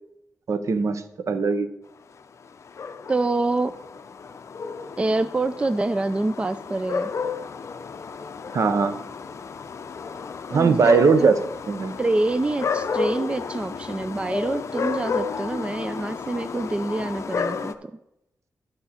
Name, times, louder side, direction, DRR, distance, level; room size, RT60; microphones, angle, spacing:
voice 1, 0.5-1.7 8.5-9.0 10.5-11.4 11.7-11.9, right 5 dB, 60° right, 10 dB, 0.8 m, -20 dB
sound 1, 2.6-17.7, left 5 dB, 55° left, 0.6 m, -32 dB
voice 2, 3.1-3.7 5.0-7.1 10.5-11.3 12.0-17.9, right 2 dB, 20° right, 12 dB, 0.3 m, -26 dB
12.0 x 6.7 x 4.2 m, 0.86 s
wide cardioid pair, 115°, 6 cm